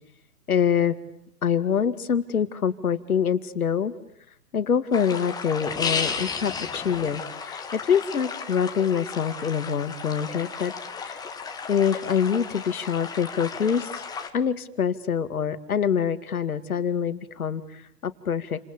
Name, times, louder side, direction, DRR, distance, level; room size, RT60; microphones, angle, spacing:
voice 1, 0.5-1.0 1.4-3.9 4.5-10.7 11.0-11.2 11.7-14.1 14.3-18.6, left 7 dB, 65° left, 12 dB, 2.4 m, -25 dB
sound 1, 4.9-14.3, left 5 dB, 10° left, 2.1 m, -34 dB
30.0 x 28.0 x 7.0 m, 0.72 s
figure-of-eight pair, 125°, 47 cm